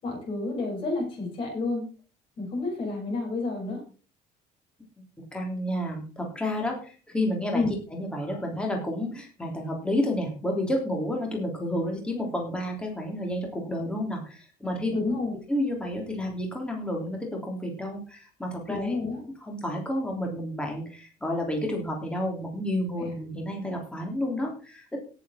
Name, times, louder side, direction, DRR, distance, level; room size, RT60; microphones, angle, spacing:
voice 1, 0.0-1.8 2.4-3.8 7.5-7.7 14.9-15.4 18.7-19.2 23.0-23.1, left 3 dB, 40° left, -2 dB, 7.2 m, -29 dB
voice 2, 5.3-7.6 7.9-14.9 15.5-19.0 19.4-25.0, left 1 dB, 5° left, 1 dB, 3.2 m, -30 dB
17.0 x 7.4 x 4.3 m, 0.38 s
cardioid pair, 180°, 14 cm